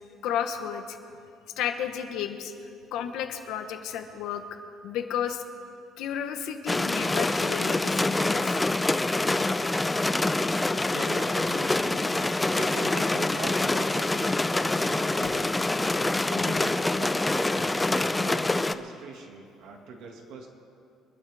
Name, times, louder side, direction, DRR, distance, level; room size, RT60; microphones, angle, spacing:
voice 1, 0.2-1.0 1.6-2.5 2.9-4.4 4.8-5.4 6.0-8.6, left 9 dB, 75° left, 7 dB, 1.2 m, -32 dB
sound 1, 6.7-18.7, left 2 dB, 10° left, 0.4 m, -26 dB
voice 2, 10.9-12.1 12.5-15.6 16.3-20.5, right 3 dB, 65° right, 2 dB, 2.1 m, -41 dB
26.0 x 12.0 x 3.5 m, 2.5 s
cardioid pair, 140°, 0 cm